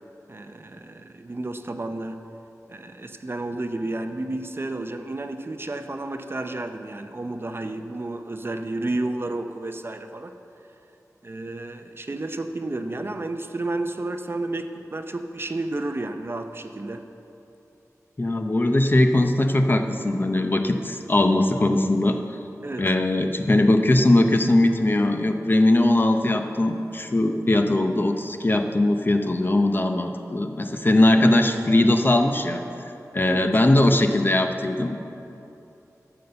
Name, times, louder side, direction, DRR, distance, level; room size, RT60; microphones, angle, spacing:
voice 1, 0.3-2.2 2.7-10.3 11.2-17.1 22.6-22.9 31.1-31.3 33.2-33.5, right 2 dB, 40° right, 7 dB, 0.6 m, -31 dB
voice 2, 18.2-22.2 22.8-32.6 33.1-35.0, left 1 dB, 35° left, 5 dB, 0.7 m, -20 dB
12.0 x 7.0 x 6.8 m, 2.9 s
wide cardioid pair, 85°, 6 cm